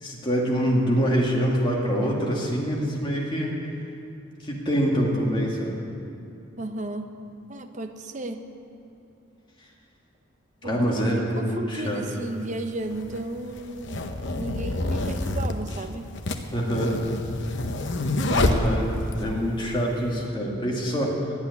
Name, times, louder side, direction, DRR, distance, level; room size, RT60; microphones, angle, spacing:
voice 1, 0.0-3.6 4.4-5.8 10.6-12.0 16.5-16.9 18.3-21.2, equal, 25° left, -3 dB, 2.2 m, -25 dB
voice 2, 6.6-7.1 7.5-8.4 10.6-11.0 11.4-14.0 14.4-16.1 18.3-18.8, right 2 dB, 35° right, 6 dB, 0.8 m, -34 dB
sound 1, 11.8-11.9 12.9-19.3, left 2 dB, 55° left, 0.9 m, -27 dB
12.5 x 8.3 x 9.6 m, 2.7 s
head